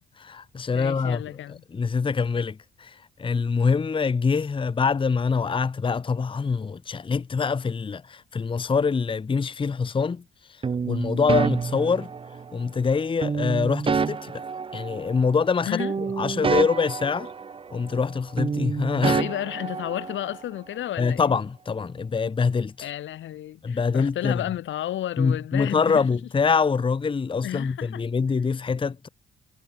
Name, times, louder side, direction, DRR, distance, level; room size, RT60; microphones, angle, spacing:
voice 1, 0.2-1.2 1.5-10.2 10.5-12.1 12.5-14.3 14.7-15.8 16.2-17.3 17.7-19.2 21.0-22.9 23.6-24.4 25.2-29.1, left 5 dB, 25° left, 0.8 m, -25 dB
voice 2, 0.7-1.6 15.7-15.9 19.0-21.4 22.8-26.1 27.4-28.0, left 12 dB, 75° left, 1.7 m, -32 dB
sound 1, 10.6-12.6 13.2-15.5 15.8-18.1 18.4-20.4, right 5 dB, 25° right, 0.6 m, -28 dB
cardioid pair, 90°, 20 cm